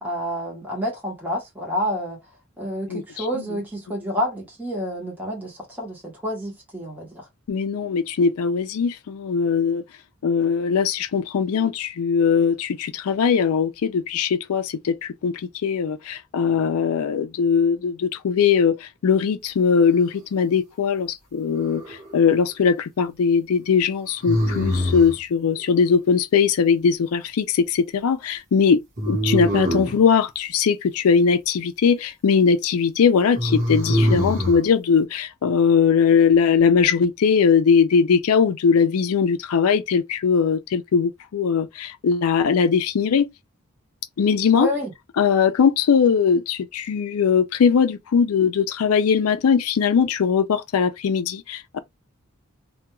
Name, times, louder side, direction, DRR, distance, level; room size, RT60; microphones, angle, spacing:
voice 1, 0.0-2.2 2.6-7.3 44.5-44.9, equal, 10° right, 0.8 m, -28 dB
voice 2, 2.9-3.2 7.5-9.8 10.2-15.3 15.6-18.8 19.0-21.8 22.1-43.3 44.2-44.7 45.2-51.8, left 6 dB, 90° left, 0.4 m, -20 dB
sound 1, 21.5-22.2 24.2-25.2 29.0-30.0 33.3-34.6, equal, 35° right, 1.0 m, -23 dB
2.2 x 2.2 x 2.9 m
head